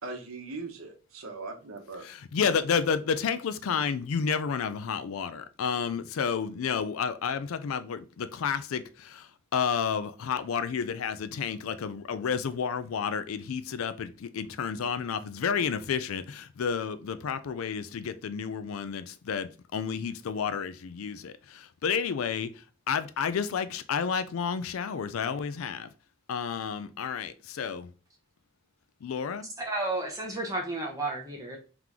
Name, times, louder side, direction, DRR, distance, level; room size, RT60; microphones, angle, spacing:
voice 1, 0.0-2.1, right 3 dB, 85° right, 0.9 m, -40 dB
voice 2, 2.0-25.9 26.3-27.9 29.0-29.5, left 6 dB, 90° left, 0.4 m, -31 dB
voice 3, 29.6-31.6, right 2 dB, 15° right, 0.7 m, -32 dB
3.8 x 3.0 x 3.6 m
head